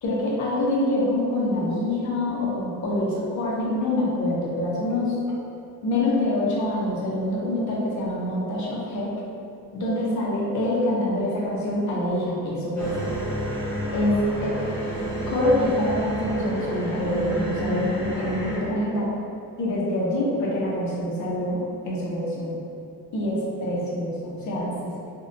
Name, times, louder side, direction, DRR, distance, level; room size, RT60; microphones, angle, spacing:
voice 1, 0.0-5.2 5.8-9.1 9.7-12.9 13.9-14.6 15.3-19.1 19.6-22.6 23.1-24.7, left 1 dB, 55° left, -5 dB, 0.6 m, -25 dB
Ohm of Creation, 12.8-18.6, equal, 10° left, 1.0 m, -30 dB
2.6 x 2.1 x 2.6 m, 2.6 s
cardioid pair, 165°, 36 cm